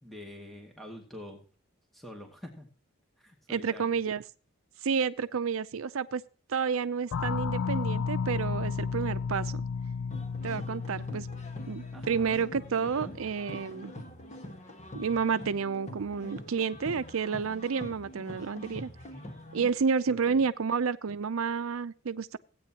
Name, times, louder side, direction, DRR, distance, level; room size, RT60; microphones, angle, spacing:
voice 1, 0.0-1.4 1.9-2.7 3.2-4.0 11.9-12.4 12.8-13.1 20.1-20.5, left 1 dB, ahead, 2.1 m, -46 dB
voice 2, 3.5-4.2 4.8-6.2 6.5-9.6 10.4-11.3 11.7-13.9 14.9-18.9 19.5-22.4, right 6 dB, 80° right, 0.5 m, -30 dB
sound 1, 7.1-13.4, left 5 dB, 80° left, 0.4 m, -33 dB
sound 2, 10.1-19.7, equal, 35° left, 1.5 m, -44 dB
16.5 x 9.2 x 2.9 m
head